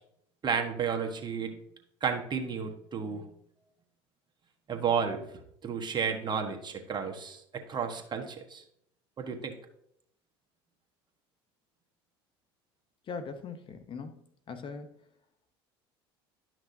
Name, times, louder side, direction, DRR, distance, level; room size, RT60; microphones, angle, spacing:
voice 1, 0.4-1.6 2.0-3.3 4.7-5.2 5.6-8.6 9.2-9.5, right 6 dB, 35° right, 4 dB, 1.4 m, -32 dB
voice 2, 13.1-15.0, left 5 dB, 40° left, 9 dB, 0.9 m, -41 dB
11.5 x 6.0 x 2.7 m, 0.73 s
hypercardioid pair, 75°, 13 cm